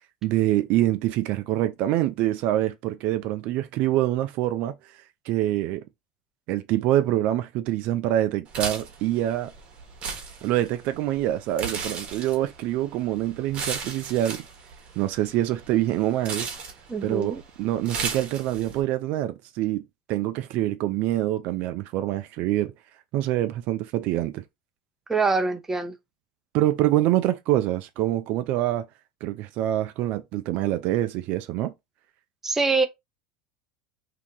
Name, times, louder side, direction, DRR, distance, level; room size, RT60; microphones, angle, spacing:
voice 1, 0.2-4.7 5.3-5.8 6.5-9.5 10.4-14.4 15.0-16.5 17.0-22.7 23.1-24.4 26.5-28.9 29.2-31.7, right 14 dB, 55° right, 0.4 m, -25 dB
sound 1, 8.5-18.8, right 5 dB, 35° right, 1.1 m, -36 dB
voice 2, 16.9-17.4 25.1-25.9 32.4-32.9, right 4 dB, 10° right, 0.6 m, -24 dB
2.8 x 2.4 x 3.6 m
supercardioid pair, 110°, 3 cm